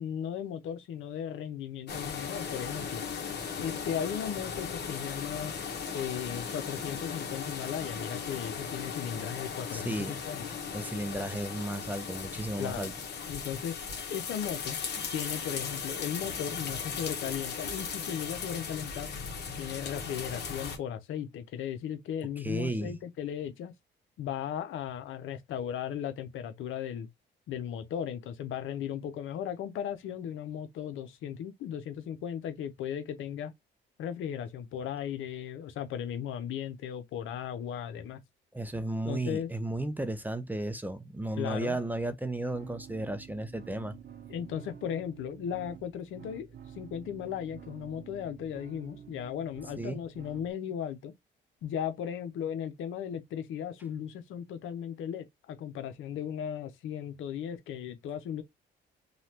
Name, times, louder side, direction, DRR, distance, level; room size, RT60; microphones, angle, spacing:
voice 1, 0.0-3.0 3.6-5.5 5.9-10.4 12.6-12.9 13.3-13.8 14.1-14.8 15.1-19.1 19.6-23.7 24.2-27.1 27.5-33.5 34.0-38.2 39.1-39.5 41.4-41.8 44.3-46.5 46.8-51.1 51.6-58.4, left 9 dB, 80° left, 0.7 m, -36 dB
sound 1, 1.9-20.8, left 6 dB, 55° left, 1.1 m, -37 dB
voice 2, 9.7-10.2 10.7-12.9 22.4-23.0 38.5-44.0 49.8-50.0, right 1 dB, 10° right, 0.5 m, -34 dB
sound 2, 42.5-50.5, right 8 dB, 55° right, 0.7 m, -49 dB
3.2 x 2.3 x 2.8 m
cardioid pair, 90°, 20 cm